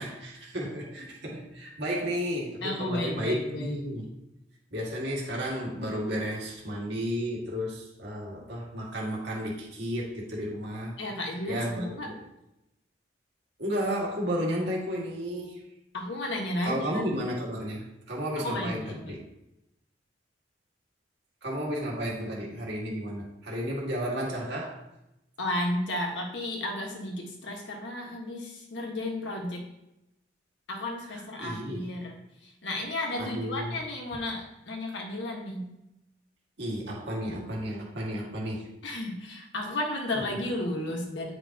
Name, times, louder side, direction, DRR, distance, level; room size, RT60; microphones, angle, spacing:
voice 1, 0.0-4.1 4.7-11.0 11.5-12.1 13.6-15.6 16.6-19.2 21.4-24.8 31.1-31.9 33.2-33.8 36.6-38.7 40.1-40.2, equal, 65° right, -3 dB, 2.0 m, -33 dB
voice 2, 2.6-3.8 11.0-12.1 15.9-17.0 18.4-19.2 25.4-29.7 30.7-35.7 38.8-41.3, left 1 dB, 70° left, 0 dB, 1.5 m, -33 dB
9.6 x 5.2 x 2.9 m, 0.89 s
head